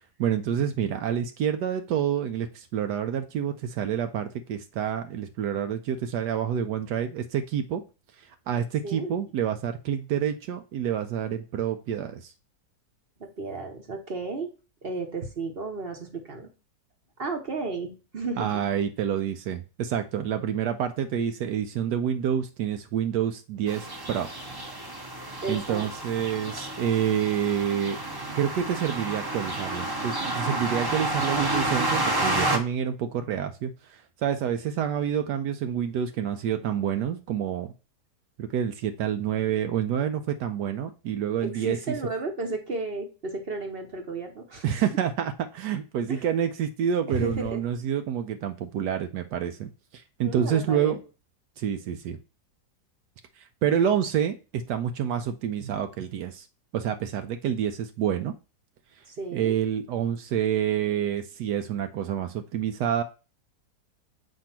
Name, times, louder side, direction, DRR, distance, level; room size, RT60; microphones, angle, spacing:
voice 1, 0.2-7.8 8.2-12.3 18.4-24.3 25.5-28.0 28.3-37.7 38.4-41.8 44.6-50.9 51.6-52.2 53.4-56.5 56.7-58.3 59.3-63.0, right 9 dB, 80° right, 7 dB, 1.2 m, -28 dB
voice 2, 13.2-14.5 14.8-16.5 17.2-18.6 25.4-25.9 41.4-44.6 46.1-46.3 47.1-47.6 50.2-51.0 59.1-59.5, right 3 dB, 40° right, 4 dB, 1.0 m, -33 dB
sound 1, 23.7-32.6, right 1 dB, 20° right, 0.6 m, -30 dB
7.5 x 2.7 x 5.8 m, 0.32 s
omnidirectional pair, 1.8 m